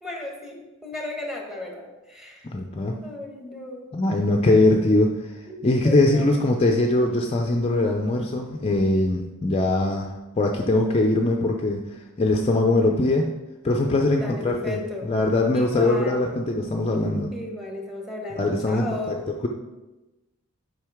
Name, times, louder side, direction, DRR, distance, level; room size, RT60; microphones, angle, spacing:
voice 1, 0.0-2.5 3.0-3.9 5.5-6.4 14.2-15.1 15.5-16.3 17.3-19.3, left 2 dB, ahead, 0 dB, 1.1 m, -35 dB
voice 2, 2.4-3.0 3.9-5.3 5.6-10.1 10.4-11.8 12.2-13.3 13.6-17.3 18.3-19.2, left 2 dB, 25° left, 2 dB, 0.5 m, -21 dB
7.6 x 5.2 x 3.5 m, 1.1 s
head